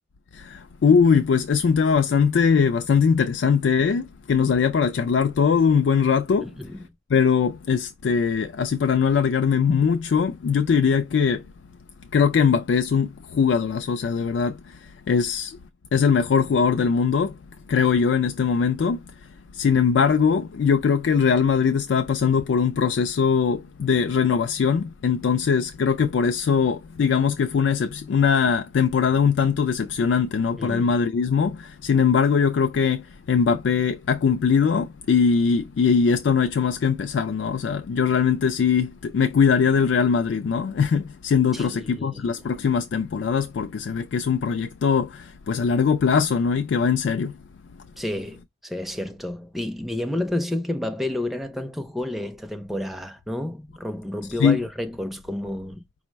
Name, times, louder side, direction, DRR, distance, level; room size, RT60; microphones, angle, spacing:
voice 1, 0.3-6.5 7.1-11.4 12.1-15.6 15.9-17.4 17.7-47.4 54.4-54.6, left 6 dB, 70° left, 0.3 m, -21 dB
voice 2, 6.4-6.8 30.6-31.0 41.5-42.4 48.0-55.8, left 1 dB, ahead, 0.4 m, -30 dB
5.2 x 2.1 x 4.4 m
head